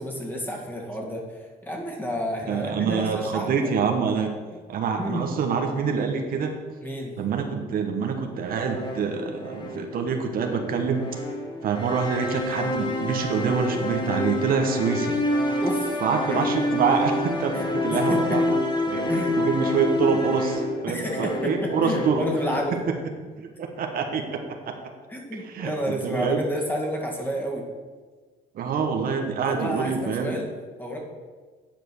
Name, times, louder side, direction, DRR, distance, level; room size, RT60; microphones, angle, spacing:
voice 1, 0.0-3.7 5.0-5.3 6.8-7.2 15.6-16.0 16.3-16.4 17.5-18.4 19.1-19.4 20.9-22.8 25.1-27.6 29.4-30.5 30.8-31.0, equal, 10° left, -1 dB, 1.9 m, -30 dB
voice 2, 2.5-4.3 4.7-6.5 7.2-11.2 11.6-15.2 16.0-18.4 18.9-19.1 19.3-22.3 23.4-24.4 24.7-24.8 25.4-26.4 28.5-30.4, right 6 dB, 60° right, 4 dB, 1.1 m, -26 dB
sound 1, 8.7-22.6, left 1 dB, 25° left, 1.3 m, -28 dB
9.1 x 5.0 x 6.3 m, 1.5 s
cardioid pair, 110°, 17 cm